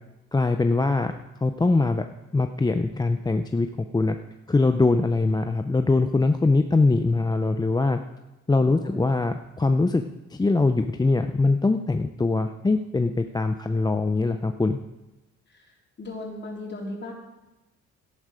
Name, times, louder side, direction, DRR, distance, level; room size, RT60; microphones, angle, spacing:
voice 1, 0.3-1.1 1.4-2.0 2.3-4.2 4.5-8.0 8.5-10.0 10.3-14.8, left 3 dB, 15° left, 7 dB, 0.5 m, -22 dB
voice 2, 8.5-9.1 15.5-15.7 16.0-17.1, left 2 dB, 35° left, -1 dB, 3.7 m, -37 dB
13.0 x 11.0 x 5.0 m, 1.0 s
cardioid pair, 90°, 30 cm